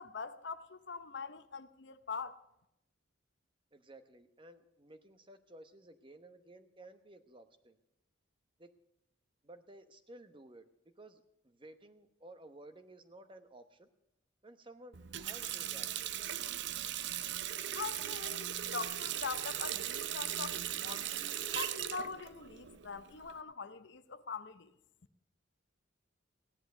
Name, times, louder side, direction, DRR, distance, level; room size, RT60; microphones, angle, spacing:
voice 1, 0.0-2.4 17.7-24.7, left 5 dB, 60° left, 0.8 m, -43 dB
voice 2, 3.7-7.8 8.6-8.7 9.4-10.7 11.0-13.9 14.4-16.3, right 1 dB, 25° right, 1.0 m, -55 dB
Water tap faucet, 14.9-23.4, right 11 dB, 60° right, 0.6 m, -38 dB
16.0 x 11.0 x 6.6 m
head